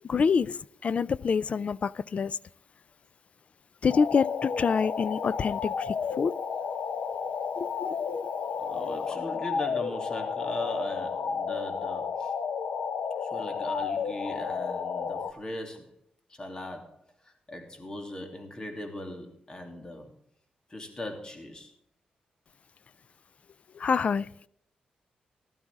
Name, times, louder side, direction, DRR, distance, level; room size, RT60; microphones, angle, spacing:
voice 1, 0.0-2.4 3.8-6.3 7.6-8.2 23.7-24.5, left 6 dB, 50° left, 0.4 m, -27 dB
sound 1, 3.9-15.3, left 6 dB, 80° left, 0.7 m, -32 dB
voice 2, 8.6-12.3 13.2-16.0 16.3-20.1 20.7-21.7, left 1 dB, 30° left, 2.9 m, -39 dB
16.0 x 12.5 x 3.6 m
cardioid pair, 100°, 3 cm